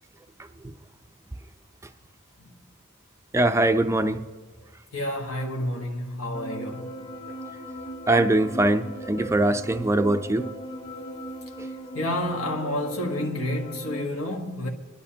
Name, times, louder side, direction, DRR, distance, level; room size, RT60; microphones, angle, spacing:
voice 1, 3.3-4.2 8.1-10.4, right 2 dB, 15° right, 0.5 m, -22 dB
voice 2, 4.9-7.1 11.9-14.7, left 1 dB, 70° left, 1.3 m, -30 dB
sound 1, 6.3-14.1, right 1 dB, 25° left, 1.3 m, -38 dB
27.5 x 11.0 x 2.8 m
head